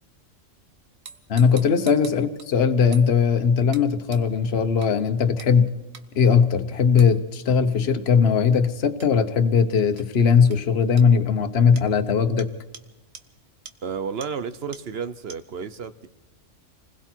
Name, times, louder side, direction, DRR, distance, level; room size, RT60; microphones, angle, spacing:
sound 1, 1.1-2.5 2.9-3.1 3.7-3.9 4.1-4.2 4.8-4.9 5.4-5.5 5.9-6.0 7.0-7.1 9.0-9.1 10.0-10.1 10.5-10.6 11.0-11.1 11.8-11.9 12.4-12.5 12.7-12.8 13.1-13.2 13.7-13.8 14.2-14.3 14.7-14.8 15.3-15.4, right 6 dB, 90° right, 1.6 m, -43 dB
voice 1, 1.3-5.7 6.1-12.5, left 6 dB, 55° left, 8 dB, 1.3 m, -19 dB
voice 2, 13.8-16.1, right 6 dB, 55° right, 13 dB, 1.0 m, -32 dB
29.0 x 20.5 x 4.5 m, 1.0 s
omnidirectional pair, 1.3 m